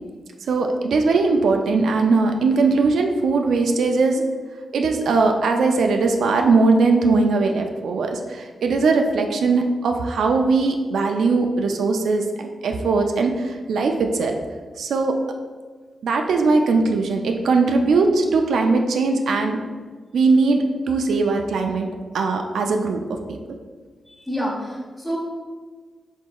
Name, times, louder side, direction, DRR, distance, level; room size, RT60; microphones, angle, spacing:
voice 1, 0.5-4.2 4.7-14.4 14.8-15.2 16.0-19.6 20.1-21.9 22.1-23.4, right 3 dB, 90° right, 4 dB, 0.3 m, -20 dB
voice 2, 24.1-25.2, equal, 10° left, -3 dB, 1.1 m, -28 dB
4.5 x 3.9 x 2.3 m, 1.5 s
wide cardioid pair, 100°, 0 cm